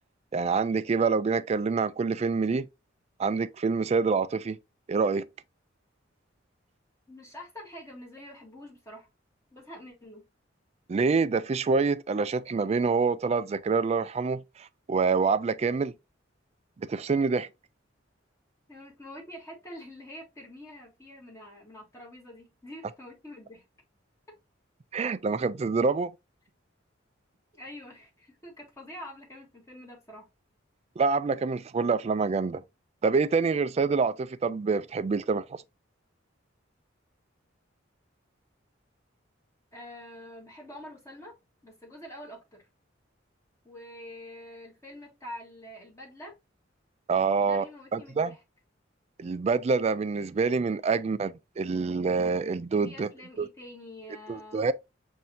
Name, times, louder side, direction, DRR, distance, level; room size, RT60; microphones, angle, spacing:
voice 1, 0.3-2.7 3.2-4.6 4.9-5.3 10.9-15.9 16.8-17.5 24.9-26.1 31.0-32.6 33.0-35.6 47.1-47.6 47.9-48.3 49.2-53.1 53.4-53.5 54.3-54.7, right 4 dB, 35° right, 0.3 m, -26 dB
voice 2, 7.1-9.1 9.5-10.2 18.7-23.6 27.5-30.3 39.7-41.4 41.6-42.7 43.6-46.3 47.4-48.4 52.8-54.7, left 1 dB, 15° left, 1.2 m, -46 dB
7.4 x 2.7 x 2.7 m
head